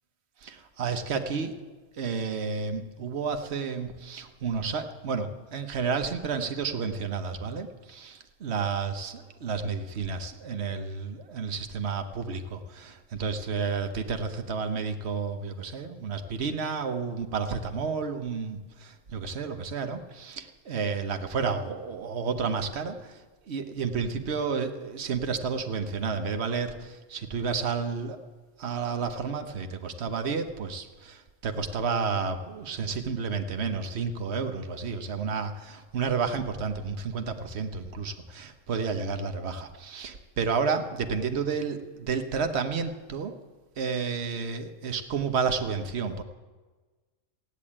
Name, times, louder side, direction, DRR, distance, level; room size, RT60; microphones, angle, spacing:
voice 1, 0.4-1.6 2.0-23.2 23.5-28.2 28.6-43.3 43.8-46.2, right 5 dB, 55° right, 6 dB, 1.3 m, -31 dB
15.5 x 9.7 x 8.7 m, 1.3 s
omnidirectional pair, 1.3 m